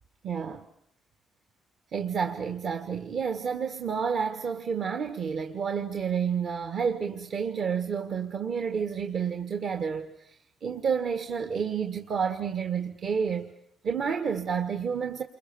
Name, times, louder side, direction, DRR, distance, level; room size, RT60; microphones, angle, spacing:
voice 1, 0.2-0.6 1.9-13.5 13.8-15.2, right 6 dB, 60° right, 1.7 m, -30 dB
29.0 x 22.5 x 7.1 m
cardioid pair, 90°, 0 cm